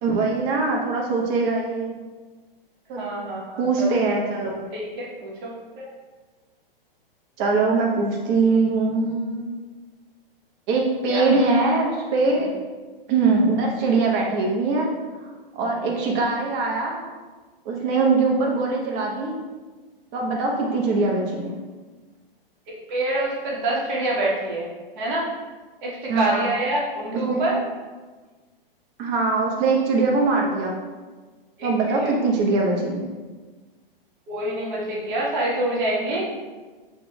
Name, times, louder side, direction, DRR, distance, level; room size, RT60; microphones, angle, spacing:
voice 1, 0.0-1.9 2.9-3.0 3.6-4.7 7.4-9.6 10.7-12.5 13.1-14.9 15.5-17.0 17.6-19.4 20.1-21.5 26.1-26.5 27.3-27.4 29.0-30.7 31.6-33.0, right 3 dB, 35° right, -1 dB, 0.9 m, -22 dB
voice 2, 3.0-3.9 4.7-5.9 11.1-11.3 12.3-12.4 22.9-24.7 25.0-25.3 25.8-27.6 31.6-31.7 32.0-32.1 34.3-36.2, right 1 dB, 55° right, -4 dB, 1.4 m, -26 dB
5.8 x 2.9 x 2.2 m, 1.3 s
hypercardioid pair, 115°, 29 cm